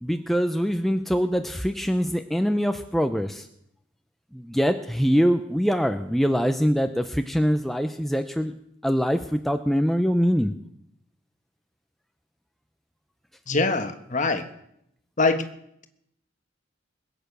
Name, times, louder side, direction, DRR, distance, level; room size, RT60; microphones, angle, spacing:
voice 1, 0.0-3.5 4.3-8.5 8.8-10.5, equal, ahead, 7 dB, 0.6 m, -23 dB
voice 2, 13.5-14.4 15.2-15.5, left 3 dB, 40° left, 8 dB, 1.3 m, -23 dB
21.0 x 9.0 x 6.7 m, 0.75 s
head